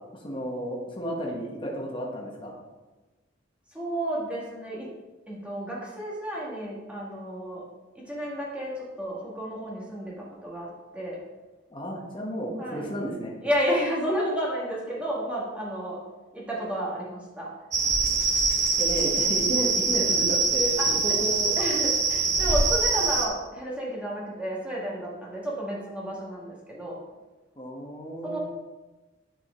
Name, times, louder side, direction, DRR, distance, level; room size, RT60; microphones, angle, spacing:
voice 1, 0.1-2.5 11.7-13.3 18.8-21.6 27.6-28.4, right 1 dB, 25° left, -3 dB, 1.3 m, -32 dB
voice 2, 3.7-4.9 5.3-7.6 8.0-11.2 12.6-12.9 13.4-16.0 16.3-17.5 20.8-21.2 21.6-27.0 28.2-28.4, equal, 5° right, -5 dB, 2.0 m, -31 dB
sound 1, 17.7-23.3, right 4 dB, 40° right, 0.9 m, -24 dB
10.5 x 5.0 x 3.8 m, 1.2 s
head